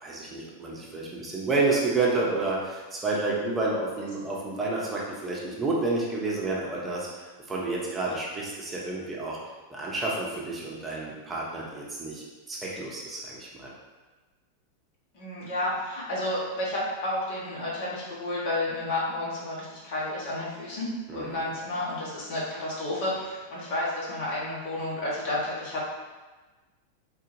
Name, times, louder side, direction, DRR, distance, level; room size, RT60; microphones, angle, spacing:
voice 1, 0.0-9.4 9.7-13.7 21.1-21.4, right 3 dB, 20° right, -5 dB, 0.8 m, -30 dB
voice 2, 15.1-25.8, left 1 dB, 55° left, -6 dB, 1.3 m, -31 dB
3.5 x 2.3 x 3.2 m, 1.2 s
figure-of-eight pair, 95°, 0 cm